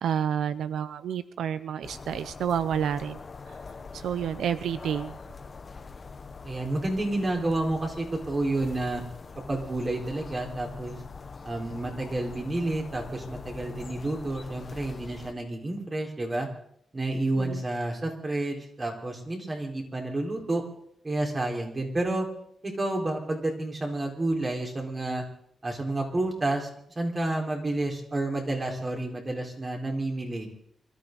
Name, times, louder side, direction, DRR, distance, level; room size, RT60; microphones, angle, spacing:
voice 1, 0.0-3.6 3.9-5.2 17.3-17.6, right 8 dB, 90° right, 14 dB, 0.5 m, -30 dB
sound 1, 1.8-15.3, left 4 dB, 40° left, 1.2 m, -43 dB
voice 2, 6.4-9.0 9.5-11.0 11.4-16.5 16.9-20.6 21.0-22.3 22.6-25.2 25.6-26.7 27.0-30.5, right 2 dB, 30° right, 1 dB, 4.4 m, -30 dB
26.0 x 13.5 x 4.0 m, 0.67 s
cardioid pair, 100°, 0 cm